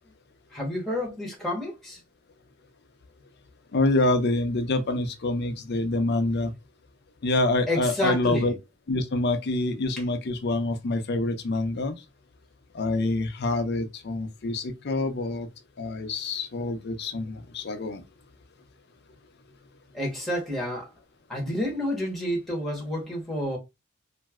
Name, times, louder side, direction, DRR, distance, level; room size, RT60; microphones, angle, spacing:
voice 1, 0.5-2.0 7.7-8.6 19.9-20.9 21.3-23.6, left 1 dB, ahead, 1.0 m, -29 dB
voice 2, 3.7-6.5 7.2-8.5 8.9-12.0 12.7-15.5 15.8-18.0, left 2 dB, 50° left, 0.5 m, -26 dB
3.1 x 2.5 x 2.3 m
head